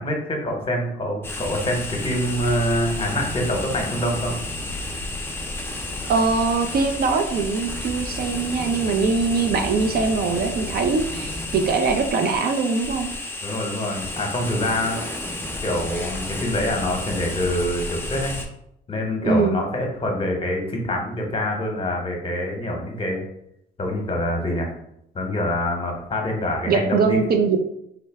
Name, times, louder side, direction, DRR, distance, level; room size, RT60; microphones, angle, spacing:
voice 1, 0.0-4.4 13.4-15.0 15.6-18.3 18.9-23.2 23.8-24.7 25.1-27.2, left 1 dB, 30° left, 2 dB, 0.9 m, -25 dB
sound 1, 1.2-18.5, left 2 dB, 10° left, 0.6 m, -31 dB
voice 2, 6.1-13.1 19.2-19.6 26.7-27.6, right 4 dB, 50° right, 6 dB, 0.4 m, -22 dB
3.7 x 2.1 x 3.3 m, 0.77 s
cardioid pair, 90°, 20 cm